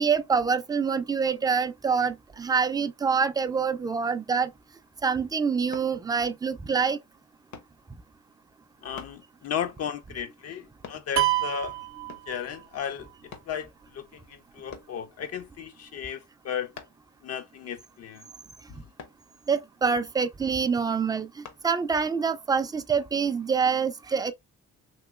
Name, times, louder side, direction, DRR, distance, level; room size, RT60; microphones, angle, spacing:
voice 1, 0.0-4.5 5.0-7.0 19.5-24.3, right 6 dB, 15° right, 0.3 m, -26 dB
sound 1, 5.7-6.0 7.5-7.8 9.0-9.2 10.8-11.1 12.1-12.4 13.3-13.5 14.7-15.0 16.8-17.1 19.0-19.2 21.4-21.6 22.2-22.3, left 6 dB, 70° left, 0.8 m, -44 dB
voice 2, 8.8-11.8 12.3-13.1 13.5-16.7 17.2-18.2, left 8 dB, 55° left, 0.5 m, -35 dB
sound 2, 11.2-12.9, right 16 dB, 65° right, 0.6 m, -27 dB
3.0 x 2.9 x 2.3 m
cardioid pair, 90°, 30 cm